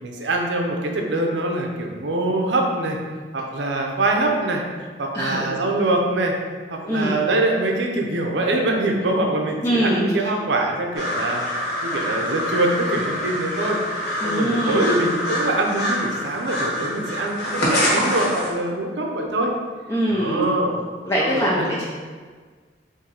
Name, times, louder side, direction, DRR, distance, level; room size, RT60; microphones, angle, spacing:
voice 1, 0.0-3.0 3.3-4.6 5.0-6.3 6.7-13.8 14.2-19.5 20.1-20.8 21.2-21.7, right 2 dB, 75° right, 1 dB, 0.6 m, -24 dB
voice 2, 5.1-5.5 6.9-7.2 9.6-10.2 14.2-14.9 19.9-20.5 21.1-21.8, equal, 15° left, -6 dB, 0.5 m, -22 dB
sound 1, 10.9-18.5, equal, 60° left, 1.2 m, -25 dB
4.3 x 2.7 x 3.9 m, 1.5 s
head